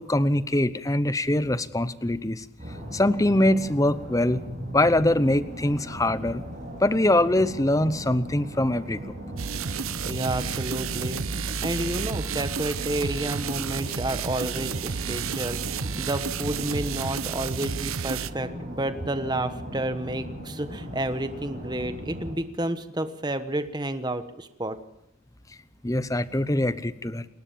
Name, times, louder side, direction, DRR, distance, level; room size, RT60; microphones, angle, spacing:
voice 1, 0.0-2.5 2.9-4.4 4.7-6.4 6.8-9.0 25.8-27.3, left 1 dB, 15° left, 15 dB, 0.8 m, -23 dB
sound 1, 2.6-22.3, equal, 35° right, 8.0 m, -39 dB
sound 2, 9.4-18.3, right 6 dB, 75° right, 0.9 m, -31 dB
voice 2, 10.0-24.8, right 1 dB, 20° right, 10 dB, 1.2 m, -30 dB
29.0 x 13.5 x 7.2 m, 0.84 s
head